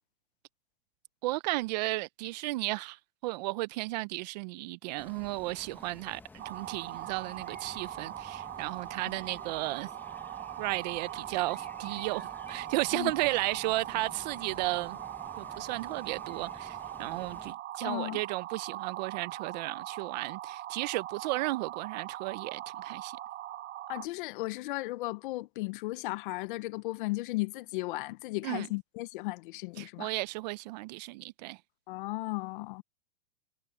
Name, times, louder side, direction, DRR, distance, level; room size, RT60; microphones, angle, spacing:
voice 1, 1.2-9.9 10.6-15.0 15.4-23.2 28.4-28.7 29.8-31.6, right 20 dB, 40° right, 0.6 m, -34 dB
sound 1, 5.0-17.5, left 3 dB, 5° left, 1.0 m, -52 dB
sound 2, 6.4-24.1, right 13 dB, 85° right, 0.9 m, -41 dB
voice 2, 17.8-18.2 23.9-30.1 31.9-32.8, left 20 dB, 45° left, 0.9 m, -35 dB
supercardioid pair, 150°, 35 cm